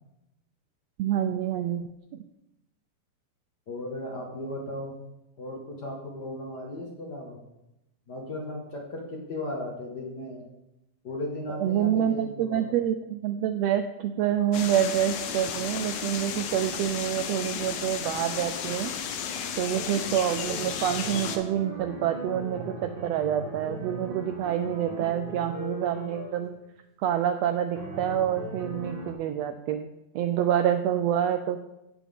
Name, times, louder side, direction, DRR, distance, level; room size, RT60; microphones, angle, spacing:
voice 1, 1.0-2.2 11.5-18.9 19.6-26.5 27.0-29.9 30.1-31.6, right 10 dB, 85° right, 8 dB, 1.5 m, -27 dB
voice 2, 3.7-4.9 5.4-7.4 8.1-10.4 11.0-12.7, left 1 dB, 45° left, -1 dB, 1.6 m, -36 dB
sound 1, 14.5-21.4, left 7 dB, 85° left, 2.4 m, -33 dB
sound 2, 19.7-26.5 27.7-29.1, right 2 dB, 60° right, 0.5 m, -38 dB
16.5 x 6.0 x 3.6 m, 0.89 s
omnidirectional pair, 3.4 m